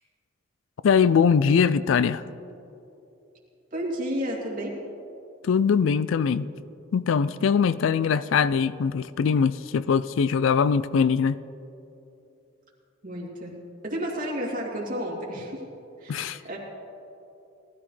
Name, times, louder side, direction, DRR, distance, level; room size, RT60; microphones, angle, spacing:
voice 1, 0.8-2.2 5.4-6.5 6.9-11.4 16.1-16.4, left 6 dB, 70° left, 16 dB, 0.4 m, -22 dB
voice 2, 3.7-4.7 13.0-13.5 13.8-15.6 16.0-16.6, equal, 40° right, -3 dB, 2.7 m, -31 dB
19.0 x 13.0 x 3.3 m, 2.8 s
head